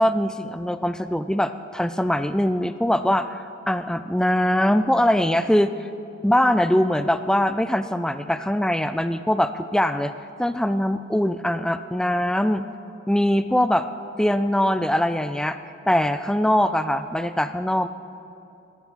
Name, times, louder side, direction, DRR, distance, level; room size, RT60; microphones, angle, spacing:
voice 1, 0.0-5.9 6.2-10.1 10.4-12.7 13.1-13.9 14.2-15.6 15.9-17.9, left 1 dB, 5° left, 11 dB, 0.3 m, -22 dB
16.5 x 13.5 x 5.8 m, 2.7 s
head